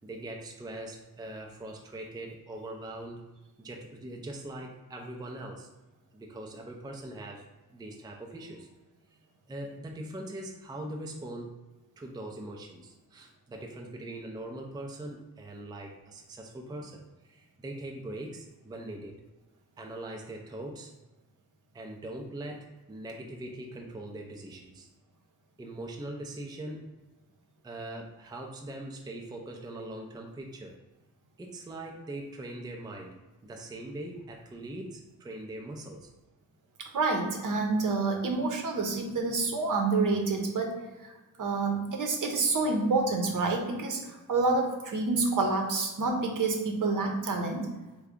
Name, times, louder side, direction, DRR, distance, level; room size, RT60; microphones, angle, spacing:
voice 1, 0.0-3.2 3.6-5.7 6.1-7.4 7.7-8.7 9.5-11.6 12.0-19.2 19.8-20.9 21.7-24.9 25.6-26.9 27.6-30.8 31.4-36.1, right 1 dB, 10° right, 1 dB, 0.4 m, -41 dB
voice 2, 36.8-41.1 41.4-47.7, right 3 dB, 55° right, 2 dB, 0.8 m, -28 dB
3.4 x 2.3 x 3.6 m, 1.1 s
cardioid pair, 65°, 38 cm